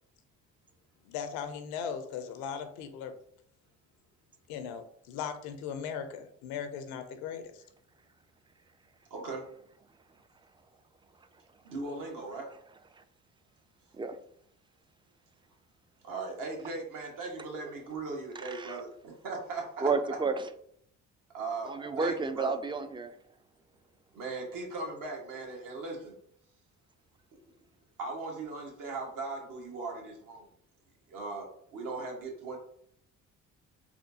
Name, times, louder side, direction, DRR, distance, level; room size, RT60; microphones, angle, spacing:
voice 1, 1.0-3.1 4.5-7.6, left 7 dB, 85° left, 8 dB, 0.6 m, -38 dB
voice 2, 9.1-9.4 11.6-12.5 16.0-19.9 21.3-22.6 24.1-26.1 28.0-30.5 31.1-32.6, right 3 dB, 65° right, 0 dB, 1.4 m, -38 dB
voice 3, 18.4-18.8 19.8-20.5 21.6-23.1, right 4 dB, 15° right, 9 dB, 0.3 m, -31 dB
4.2 x 2.3 x 2.7 m, 0.67 s
supercardioid pair, 70°, 35 cm